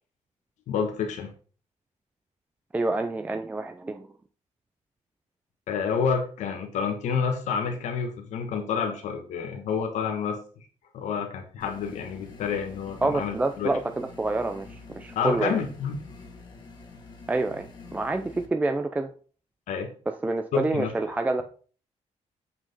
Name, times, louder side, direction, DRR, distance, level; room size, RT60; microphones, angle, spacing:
voice 1, 0.7-1.3 5.7-10.7 10.9-13.7 15.1-16.0 19.7-19.9 20.5-20.9, left 6 dB, 75° left, 5 dB, 1.2 m, -29 dB
voice 2, 2.7-4.1 13.0-15.6 17.3-19.1 20.1-21.4, right 2 dB, 10° right, 6 dB, 0.4 m, -27 dB
sound 1, 11.6-18.5, left 3 dB, 40° left, 1.5 m, -47 dB
7.8 x 5.9 x 4.1 m, 0.41 s
cardioid pair, 170°, 12 cm